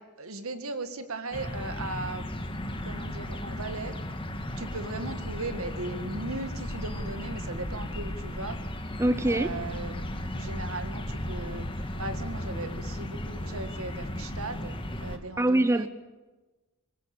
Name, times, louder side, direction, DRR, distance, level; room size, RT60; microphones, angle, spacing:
voice 1, 0.2-2.3 2.8-3.9 4.6-8.6 9.3-10.0 10.3-11.7 12.0-15.9, right 2 dB, 65° right, 9 dB, 2.0 m, -37 dB
sound 1, 1.3-15.2, left 1 dB, 25° left, 1.8 m, -35 dB
voice 2, 9.0-9.6 15.4-15.9, right 1 dB, 10° right, 12 dB, 0.7 m, -24 dB
23.5 x 20.5 x 7.1 m, 1.2 s
head